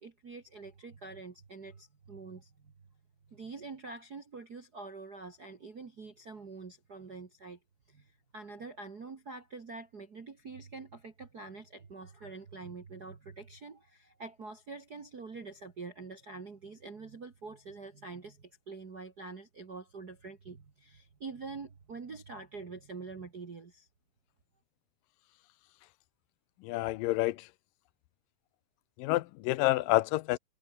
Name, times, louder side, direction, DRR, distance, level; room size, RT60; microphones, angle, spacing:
voice 1, 0.0-2.7 3.3-7.6 7.9-23.9, right 4 dB, 35° right, 1.9 m, -46 dB
voice 2, 26.6-27.5 29.0-30.4, left 18 dB, 80° left, 2.3 m, -28 dB
omnidirectional pair, 4.0 m